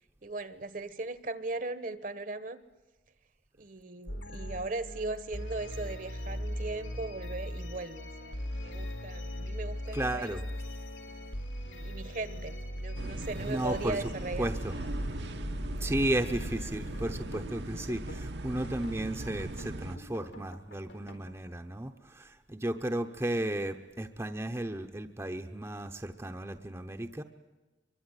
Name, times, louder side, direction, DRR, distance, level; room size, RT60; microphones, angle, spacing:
voice 1, 0.2-2.6 3.6-10.4 11.1-11.4 11.6-14.5, right 3 dB, 45° right, 14 dB, 1.2 m, -38 dB
sound 1, 4.1-18.3 18.6-19.0 19.4-21.5, equal, 85° left, 4.1 m, -40 dB
voice 2, 9.9-10.4 13.5-14.0 14.4-14.7 15.8-27.2, right 1 dB, 15° right, 6 dB, 0.8 m, -34 dB
sound 2, 12.9-20.0, right 1 dB, 70° right, 1.1 m, -39 dB
24.0 x 23.5 x 9.8 m, 1.1 s
head